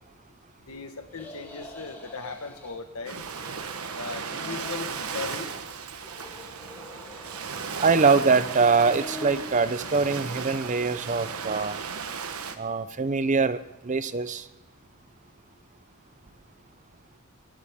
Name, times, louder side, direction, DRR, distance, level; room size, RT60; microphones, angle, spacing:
voice 1, 0.7-3.2 3.9-5.6, left 4 dB, 80° left, 7 dB, 1.5 m, -38 dB
sound 1, 1.1-2.8 3.1-3.9 4.2-5.6 5.9-7.6 7.9-9.4, equal, 10° left, 2.8 m, -44 dB
Ocean, 3.0-12.5, right 6 dB, 90° right, 1.2 m, -35 dB
voice 2, 7.8-11.8 12.6-14.5, right 4 dB, 35° right, 13 dB, 0.6 m, -23 dB
23.5 x 12.5 x 3.6 m, 0.93 s
head